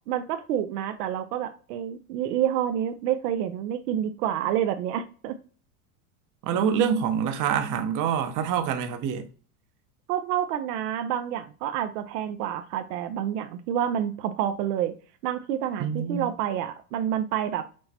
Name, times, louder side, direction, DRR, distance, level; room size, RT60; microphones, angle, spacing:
voice 1, 0.1-5.4 10.1-14.9 15.2-17.7, right 10 dB, 80° right, 0.7 m, -28 dB
voice 2, 6.4-9.3 15.8-16.3, right 8 dB, 40° right, 0.7 m, -26 dB
6.2 x 2.1 x 2.8 m
supercardioid pair, 120°, 47 cm